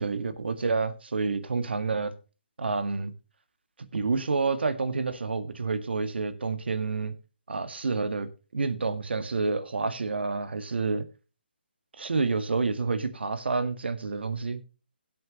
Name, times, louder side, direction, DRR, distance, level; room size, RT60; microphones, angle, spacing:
voice 1, 0.0-2.1 2.6-3.1 3.9-7.2 7.5-11.1 12.0-14.6, right 4 dB, 75° right, 1.7 m, -29 dB
17.5 x 7.8 x 3.0 m
hypercardioid pair, 165°, 6 cm